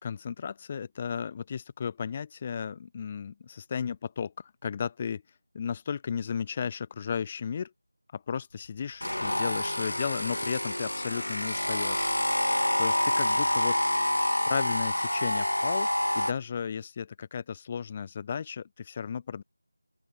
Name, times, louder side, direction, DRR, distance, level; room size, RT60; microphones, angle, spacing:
voice 1, 0.0-5.2 5.5-7.7 8.1-12.5 12.8-13.8 14.5-15.9 16.2-19.4, left 7 dB, 20° left, 1.9 m, -34 dB
sound 1, 9.0-16.3, left 1 dB, 80° left, 1.0 m, -27 dB
open air
figure-of-eight pair, 170°, 0 cm